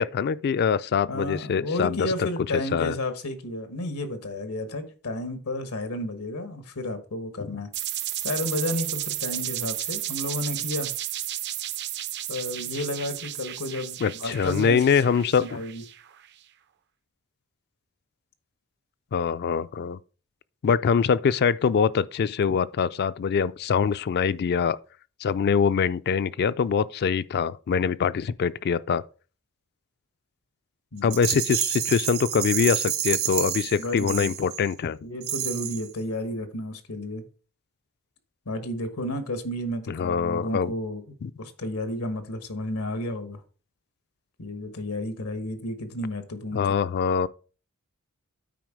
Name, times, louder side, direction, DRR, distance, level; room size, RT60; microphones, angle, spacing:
voice 1, 0.0-2.3 2.7-3.0 7.4-7.5 14.0-15.4 19.1-20.0 20.6-24.8 25.2-29.0 31.0-35.0 39.9-40.7 41.2-41.3 46.5-47.3, left 6 dB, 50° left, 0.3 m, -24 dB
voice 2, 1.1-7.7 8.2-10.9 12.3-15.8 30.9-31.2 33.8-34.3 35.0-37.2 38.4-43.4 44.4-46.7, left 1 dB, 90° left, 1.3 m, -32 dB
sound 1, 7.7-16.3, right 13 dB, 50° right, 0.5 m, -33 dB
Rattle, 31.1-34.7 35.2-35.9, right 10 dB, 70° right, 1.5 m, -29 dB
9.3 x 4.4 x 4.9 m
head